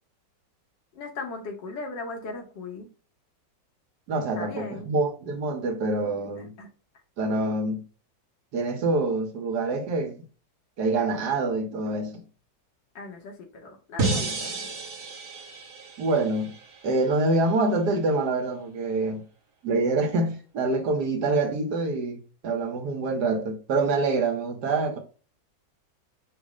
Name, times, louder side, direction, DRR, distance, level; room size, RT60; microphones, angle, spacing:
voice 1, 0.9-2.9 4.3-4.8 6.0-6.7 13.0-14.6, left 3 dB, 85° left, 1.8 m, -38 dB
voice 2, 4.1-6.5 7.2-7.8 8.5-10.1 10.8-12.2 16.0-16.5 16.8-19.2 19.6-25.0, right 3 dB, 65° right, 1.4 m, -26 dB
sound 1, 14.0-17.1, right 3 dB, 45° right, 0.9 m, -31 dB
5.3 x 2.1 x 4.8 m
omnidirectional pair, 1.9 m